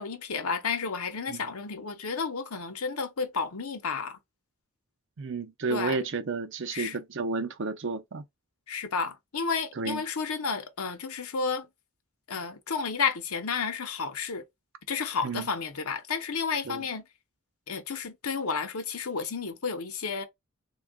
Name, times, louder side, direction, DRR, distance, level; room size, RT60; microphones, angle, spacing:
voice 1, 0.0-4.2 5.7-6.0 6.7-6.9 8.7-11.7 12.3-14.4 14.9-17.0 17.7-20.2, left 5 dB, 85° left, 0.8 m, -31 dB
voice 2, 5.2-8.2 9.8-10.0 15.2-15.5 16.7-16.8, right 4 dB, 55° right, 0.6 m, -32 dB
3.6 x 2.3 x 3.5 m
head